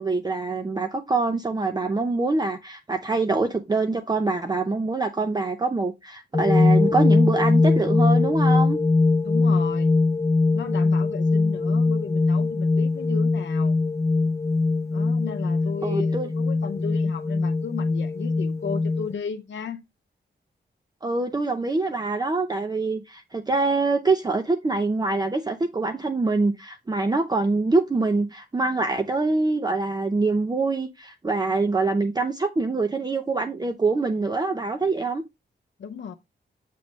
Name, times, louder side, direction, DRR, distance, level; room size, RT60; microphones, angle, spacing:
voice 1, 0.0-8.8 15.8-16.3 21.0-35.2, right 3 dB, 20° right, 0.6 m, -24 dB
sound 1, 6.3-19.1, left 3 dB, 15° left, 0.4 m, -21 dB
voice 2, 9.2-9.9 10.5-13.8 14.9-19.8 35.8-36.1, left 6 dB, 80° left, 0.7 m, -34 dB
8.5 x 3.2 x 5.1 m
wide cardioid pair, 140°, 19 cm